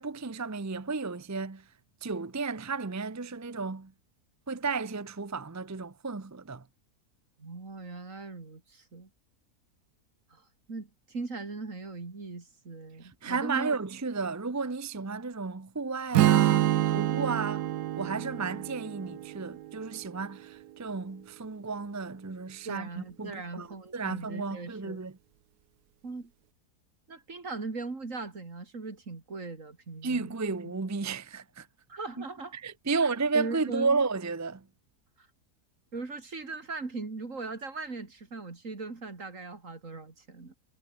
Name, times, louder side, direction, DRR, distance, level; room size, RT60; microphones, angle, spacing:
voice 1, 0.0-1.6 2.0-3.9 4.5-6.6 13.2-17.7 18.0-23.7 23.9-25.1 30.0-31.7 32.2-32.3 32.5-34.6, right 4 dB, 25° right, 0.3 m, -33 dB
voice 2, 7.4-9.1 10.3-13.8 22.6-25.0 26.0-26.3 27.1-30.3 30.6-30.7 31.9-32.6 33.0-34.0 35.2-35.3 35.9-40.5, right 3 dB, 50° right, 3.4 m, -39 dB
Strum, 16.1-20.3, right 13 dB, 80° right, 1.3 m, -27 dB
omnidirectional pair, 1.7 m